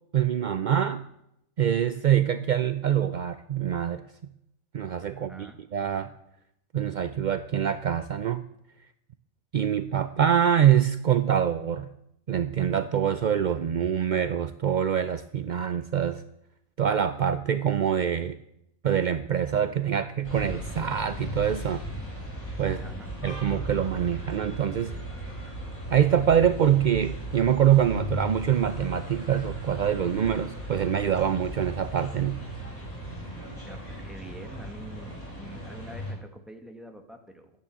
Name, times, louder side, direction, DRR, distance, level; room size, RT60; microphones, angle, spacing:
voice 1, 0.1-1.0 1.6-4.0 4.7-6.1 6.7-8.4 9.5-11.9 12.3-16.2 16.8-18.4 18.8-21.8 22.6-22.8 23.2-24.9 25.9-32.4, right 9 dB, 60° right, 11 dB, 0.4 m, -25 dB
voice 2, 5.1-5.6 22.6-23.1 33.2-37.5, right 1 dB, ahead, 4 dB, 1.6 m, -46 dB
sound 1, 20.2-36.1, right 1 dB, 80° left, 6.6 m, -37 dB
13.5 x 9.5 x 7.5 m, 0.78 s
omnidirectional pair, 1.5 m